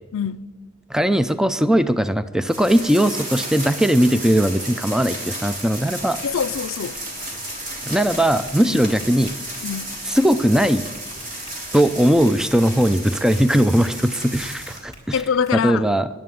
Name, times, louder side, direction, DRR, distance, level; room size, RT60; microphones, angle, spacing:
voice 1, 0.1-0.5 6.2-7.0 8.6-8.8 9.6-10.0 15.1-15.9, left 7 dB, 85° left, 0.5 m, -24 dB
voice 2, 0.9-6.2 7.8-9.4 10.0-10.8 11.7-15.2 15.5-16.1, equal, 5° right, 0.4 m, -19 dB
sound 1, 2.5-14.8, right 1 dB, 45° right, 3.4 m, -33 dB
Tap, 5.5-15.5, equal, 20° right, 4.6 m, -47 dB
11.5 x 11.0 x 7.0 m
head